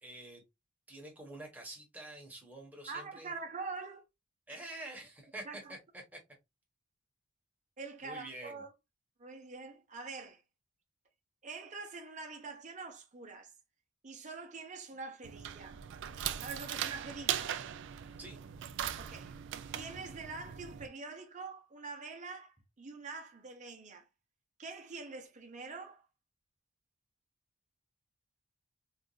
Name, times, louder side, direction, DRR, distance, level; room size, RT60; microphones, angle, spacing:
voice 1, 0.0-0.4 0.9-3.3 4.5-5.8 6.1-6.2 8.0-8.6 18.2-18.4, right 1 dB, 5° right, 1.0 m, -47 dB
voice 2, 2.9-4.0 4.5-4.6 5.4-5.7 7.8-8.7 9.2-10.4 11.4-13.5 14.0-15.8 16.4-17.6 18.9-19.4 19.7-24.1 24.6-26.1, right 4 dB, 35° right, 0.7 m, -45 dB
sound 1, 15.2-20.9, right 10 dB, 55° right, 0.3 m, -39 dB
3.9 x 2.4 x 2.3 m
head